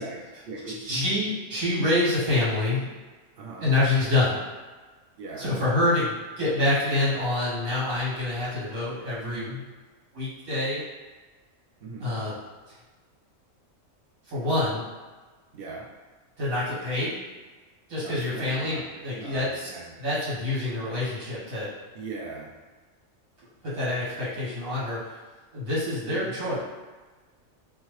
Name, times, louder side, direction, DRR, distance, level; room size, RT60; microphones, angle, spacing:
voice 1, 0.0-1.1 3.4-3.7 5.2-5.5 9.2-9.6 11.8-12.2 15.5-15.8 18.0-19.9 21.9-22.5 26.0-26.3, right 2 dB, 65° right, -1 dB, 0.6 m, -39 dB
voice 2, 0.8-2.9 3.6-4.4 5.4-9.5 10.1-10.8 12.0-12.4 14.3-14.9 16.4-17.1 17.9-19.7 20.0-21.7 23.6-25.0 25.5-26.6, left 2 dB, 80° right, -9 dB, 1.7 m, -26 dB
3.0 x 2.2 x 3.1 m, 1.3 s
omnidirectional pair, 1.4 m